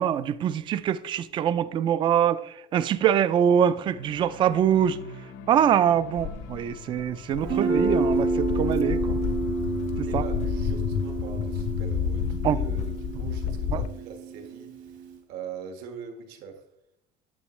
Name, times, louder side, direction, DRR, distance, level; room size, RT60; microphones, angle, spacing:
voice 1, 0.0-5.0 5.5-9.2 10.0-10.2 12.4-12.6 13.7-13.8, right 9 dB, 30° right, 0.3 m, -24 dB
sound 1, 3.8-12.1, left 3 dB, 85° left, 0.9 m, -47 dB
Walk footsteps, 6.2-13.9, left 8 dB, 40° left, 0.5 m, -30 dB
Guitar, 7.4-15.1, right 3 dB, 50° right, 1.5 m, -29 dB
voice 2, 10.0-16.6, right 6 dB, 70° right, 1.6 m, -42 dB
10.0 x 7.2 x 3.2 m
cardioid pair, 170°, 17 cm